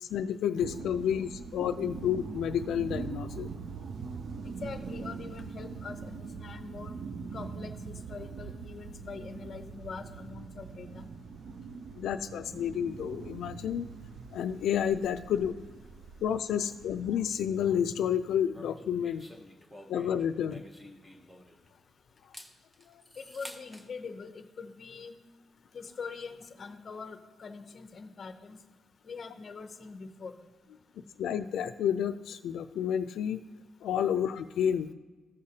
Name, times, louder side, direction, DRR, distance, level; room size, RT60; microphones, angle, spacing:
voice 1, 0.0-3.5 12.0-13.9 14.3-15.6 16.2-19.3 19.9-20.6 31.2-33.4 33.8-34.9, left 9 dB, 85° left, 8 dB, 0.3 m, -30 dB
sound 1, 0.6-17.3, right 5 dB, 50° right, 0.4 m, -42 dB
voice 2, 4.4-6.9 7.3-11.0 23.2-25.1 25.7-28.6 29.0-30.3, left 5 dB, 35° left, 8 dB, 0.6 m, -43 dB
sound 2, 18.5-21.8 22.2-23.9, left 1 dB, 5° right, 0.7 m, -50 dB
14.5 x 6.4 x 2.8 m, 1.3 s
wide cardioid pair, 165°, 0 cm